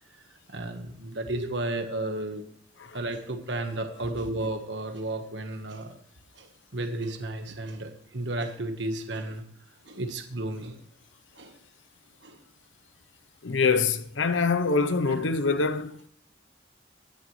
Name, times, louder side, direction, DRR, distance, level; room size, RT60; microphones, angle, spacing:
voice 1, 0.5-2.4 2.9-6.0 6.3-9.4 9.8-10.8 11.3-11.6 12.2-12.4 15.1-15.2, right 2 dB, 70° right, 1.3 m, -33 dB
voice 2, 13.4-16.0, left 4 dB, 85° left, 0.8 m, -24 dB
16.5 x 10.5 x 3.2 m
head